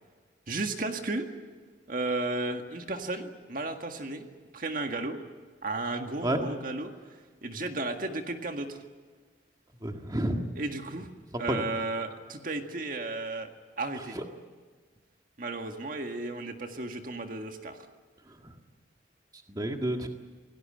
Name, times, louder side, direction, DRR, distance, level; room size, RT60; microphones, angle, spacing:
voice 1, 0.5-1.3 1.9-4.3 4.5-5.2 5.6-6.9 7.4-8.8 10.5-11.1 11.4-13.5 13.8-14.2 15.4-17.9, right 2 dB, 45° right, 5 dB, 1.8 m, -34 dB
voice 2, 9.8-10.4 11.3-11.6 14.1-14.2 18.3-18.5 19.5-20.1, right 1 dB, 20° right, 3 dB, 1.8 m, -30 dB
27.5 x 18.0 x 8.9 m, 1.5 s
head